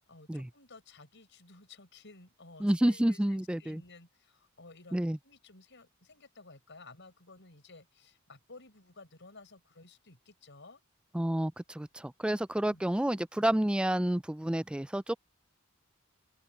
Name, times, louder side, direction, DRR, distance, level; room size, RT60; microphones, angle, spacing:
voice 1, 0.0-10.8 12.6-12.8, left 3 dB, 60° left, 6.5 m, -55 dB
voice 2, 2.6-3.8 4.9-5.2 11.1-15.1, right 1 dB, 5° right, 0.3 m, -29 dB
open air
head